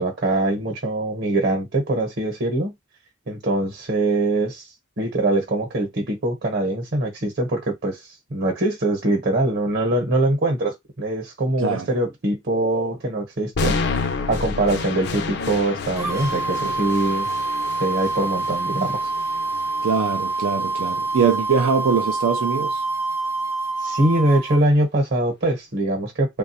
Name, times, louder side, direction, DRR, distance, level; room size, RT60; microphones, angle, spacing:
voice 1, 0.0-2.7 3.3-4.7 5.0-13.8 14.3-17.3 17.8-19.1 23.8-26.4, right 2 dB, 55° right, 0.9 m, -23 dB
sound 1, 13.6-21.6, left 4 dB, 55° left, 0.5 m, -30 dB
sound 2, 16.0-24.6, right 3 dB, 15° right, 0.4 m, -26 dB
voice 2, 19.8-22.8, right 6 dB, 85° right, 0.4 m, -22 dB
3.2 x 2.3 x 2.7 m
head